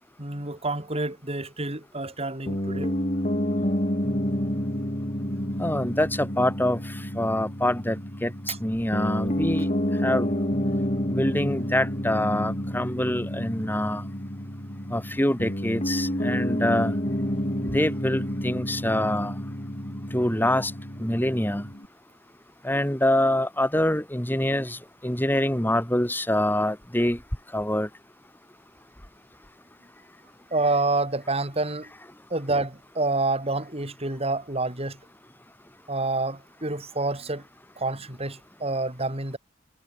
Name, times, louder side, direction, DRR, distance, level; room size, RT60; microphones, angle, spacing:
voice 1, 0.2-2.9 8.5-8.6 17.7-17.8 30.5-31.9 32.3-35.0 35.9-37.4 37.8-39.4, right 2 dB, 30° right, 4.6 m, -28 dB
Piano, 2.5-21.9, equal, 35° left, 6.0 m, -29 dB
voice 2, 5.6-6.8 7.2-8.3 8.6-9.7 10.0-10.3 11.1-14.0 14.9-16.9 17.7-19.4 20.1-20.7 21.0-21.7 22.6-24.8 25.0-27.2 27.5-27.9, left 1 dB, 10° left, 3.8 m, -25 dB
head